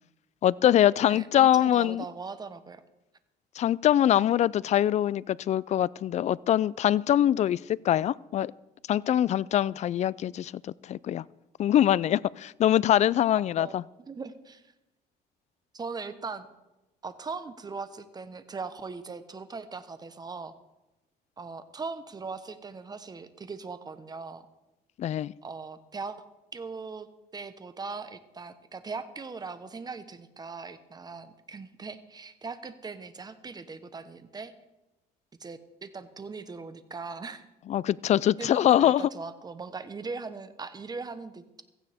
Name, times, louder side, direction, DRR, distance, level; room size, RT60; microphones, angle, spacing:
voice 1, 0.4-2.0 3.6-8.5 8.9-11.2 11.6-13.8 25.0-25.3 37.7-39.1, left 11 dB, 45° left, 22 dB, 0.4 m, -23 dB
voice 2, 1.1-2.8 13.6-13.8 14.1-14.7 15.7-16.5 17.0-20.5 21.4-24.5 25.4-26.2 26.5-27.1 27.3-34.5 35.4-37.4 38.4-41.6, right 4 dB, 25° right, 11 dB, 1.0 m, -40 dB
16.0 x 15.0 x 3.5 m, 0.99 s
cardioid pair, 110°, 17 cm